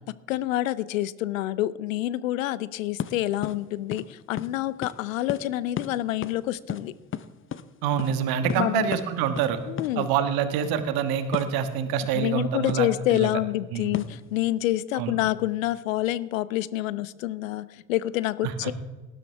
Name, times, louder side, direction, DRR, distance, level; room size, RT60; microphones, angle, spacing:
voice 1, 0.1-6.9 8.4-8.9 9.7-10.1 12.1-18.7, left 15 dB, 75° left, 18 dB, 0.6 m, -27 dB
sound 1, 3.0-3.1 3.4-3.6 3.9-4.0 4.4-4.6 4.8-4.9 5.3-5.4 5.8-5.9 6.2-6.4 6.7-7.6 8.0-8.1 8.5-8.7 8.9-9.1 9.3-9.5 9.8-9.9 11.3-11.6 12.7-12.9 13.9-14.2, left 9 dB, 30° left, 0.7 m, -32 dB
voice 2, 7.8-9.6 9.9-13.3 13.7-13.9 15.0-15.2 18.4-18.7, right 8 dB, 60° right, 9 dB, 1.5 m, -26 dB
18.5 x 12.0 x 3.4 m, 1.3 s
figure-of-eight pair, 55°, 40 cm